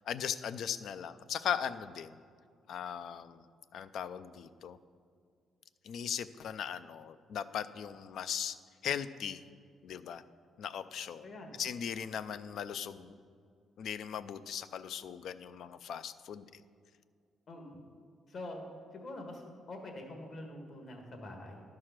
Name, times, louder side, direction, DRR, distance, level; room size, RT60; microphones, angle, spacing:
voice 1, 0.1-2.2 2.7-3.4 3.7-4.8 5.8-8.6 8.8-9.4 9.8-10.2 10.6-11.3 11.6-13.2 13.8-16.6, left 8 dB, 70° left, 13 dB, 0.4 m, -38 dB
voice 2, 17.5-17.8 18.3-18.7 18.9-19.4 19.7-21.6, left 1 dB, 55° left, 2 dB, 1.5 m, -45 dB
11.5 x 4.8 x 5.9 m, 2.2 s
cardioid pair, 90°, 0 cm